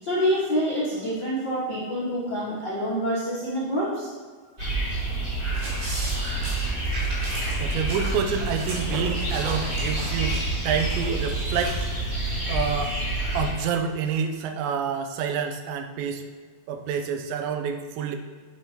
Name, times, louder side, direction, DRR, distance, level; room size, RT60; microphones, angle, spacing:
voice 1, 0.0-4.1, equal, 70° left, -9 dB, 1.0 m, -26 dB
sound 1, 4.6-13.5, right 2 dB, 20° right, 1.9 m, -28 dB
sound 2, 5.5-11.8, right 1 dB, 55° right, 3.5 m, -38 dB
voice 2, 7.6-11.8 12.5-13.0 13.3-16.3 16.7-18.2, right 6 dB, 85° right, 6 dB, 2.9 m, -28 dB
sound 3, 8.8-14.2, right 1 dB, 40° right, 2.6 m, -42 dB
9.1 x 7.5 x 2.9 m, 1.5 s
omnidirectional pair, 5.1 m